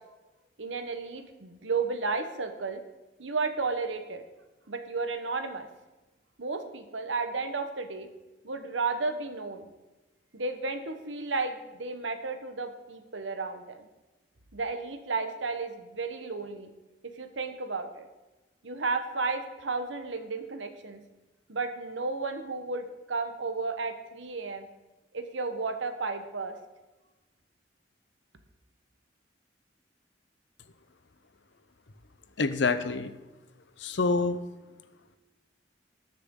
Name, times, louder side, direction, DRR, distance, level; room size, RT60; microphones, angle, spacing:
voice 1, 0.6-2.8 3.2-4.2 4.7-5.7 6.4-8.1 8.4-9.7 10.3-13.8 14.5-16.7 17.0-18.1 18.6-21.0 21.5-24.7 25.1-26.6, right 4 dB, 85° right, 7 dB, 1.2 m, -33 dB
voice 2, 32.4-33.1 33.8-34.4, left 3 dB, 70° left, 11 dB, 0.8 m, -26 dB
19.5 x 6.7 x 3.8 m, 1.1 s
head